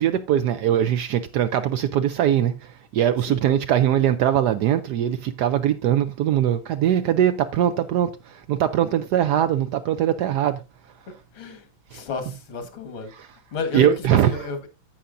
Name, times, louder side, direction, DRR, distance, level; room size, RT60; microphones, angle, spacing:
voice 1, 0.0-10.6 11.9-12.0 13.1-13.3 13.7-14.5, right 10 dB, 75° right, 0.9 m, -21 dB
voice 2, 11.9-13.1 13.5-14.7, left 4 dB, 90° left, 2.3 m, -32 dB
15.0 x 5.6 x 2.5 m
omnidirectional pair, 2.2 m